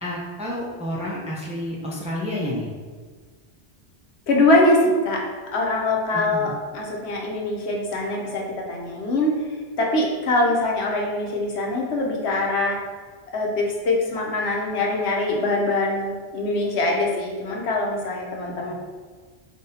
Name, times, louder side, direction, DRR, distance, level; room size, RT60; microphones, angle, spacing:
voice 1, 0.0-2.7 6.1-6.5 18.5-18.7, left 1 dB, 10° right, -5 dB, 0.5 m, -30 dB
voice 2, 4.3-5.2 5.5-9.3 9.8-12.8 13.3-18.7, left 2 dB, 75° left, -1 dB, 1.0 m, -23 dB
5.5 x 2.7 x 2.7 m, 1.5 s
omnidirectional pair, 1.1 m